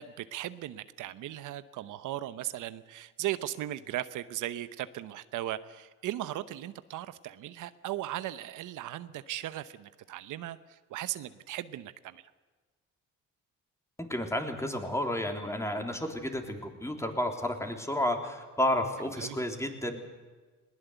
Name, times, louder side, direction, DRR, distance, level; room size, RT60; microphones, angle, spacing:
voice 1, 0.0-12.2 19.2-19.4, right 13 dB, 85° right, 13 dB, 0.9 m, -37 dB
voice 2, 14.0-20.0, left 1 dB, 10° left, 4 dB, 3.6 m, -31 dB
20.5 x 19.5 x 8.1 m, 1.3 s
cardioid pair, 90°, 30 cm